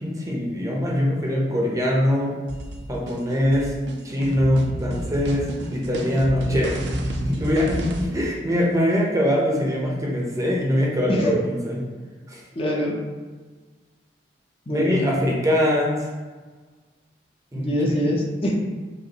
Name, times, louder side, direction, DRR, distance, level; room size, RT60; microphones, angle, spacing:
voice 1, 0.0-2.3 2.9-3.7 4.0-11.8 12.3-12.4 14.7-16.1 17.5-17.7, left 1 dB, 20° right, -3 dB, 0.6 m, -23 dB
sound 1, 2.5-8.0, right 1 dB, 75° right, 0.5 m, -31 dB
voice 2, 12.5-13.0 14.7-15.0 17.5-18.5, equal, 30° left, -2 dB, 0.6 m, -24 dB
5.1 x 2.5 x 2.9 m, 1.4 s
head